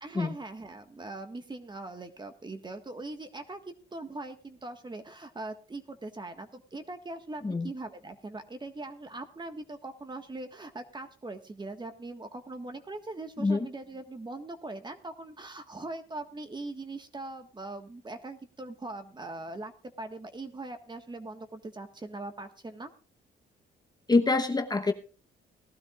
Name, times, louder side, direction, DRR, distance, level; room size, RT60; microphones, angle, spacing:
voice 1, 0.0-22.9, right 2 dB, 20° right, 7 dB, 1.6 m, -41 dB
voice 2, 24.1-24.9, left 3 dB, 20° left, 5 dB, 1.1 m, -25 dB
19.0 x 12.5 x 2.5 m, 0.36 s
cardioid pair, 90°, 20 cm